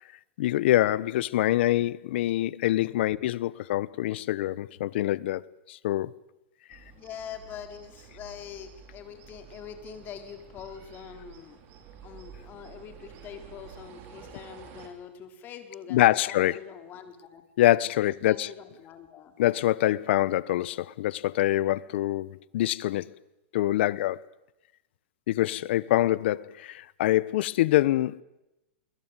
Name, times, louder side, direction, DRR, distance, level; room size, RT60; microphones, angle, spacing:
voice 1, 0.4-5.4 5.7-6.1 15.9-16.6 17.6-18.5 19.4-23.1 23.5-24.2 25.3-28.2, left 15 dB, 65° left, 1.0 m, -25 dB
sound 1, 6.7-14.9, right 8 dB, 40° right, 5.2 m, -50 dB
voice 2, 6.9-11.6 12.0-17.4 18.1-19.3, left 8 dB, 30° left, 4.1 m, -44 dB
28.5 x 22.5 x 9.1 m
supercardioid pair, 145°, 7 cm